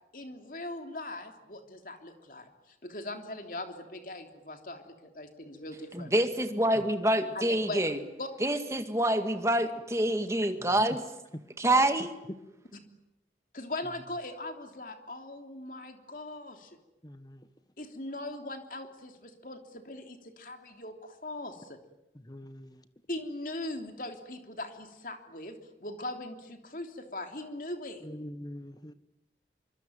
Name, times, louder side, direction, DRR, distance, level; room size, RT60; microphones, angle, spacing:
voice 1, 0.1-6.1 7.3-7.8 8.2-8.3 11.6-11.8 13.5-16.8 17.8-21.8 23.1-28.1, left 2 dB, 50° left, 3.3 m, -40 dB
voice 2, 5.9-8.0 8.4-11.0 11.6-12.2, right 1 dB, 15° right, 1.9 m, -26 dB
voice 3, 17.0-17.5 22.1-22.7 28.0-28.9, left 1 dB, 25° left, 1.3 m, -44 dB
25.5 x 24.5 x 9.3 m
head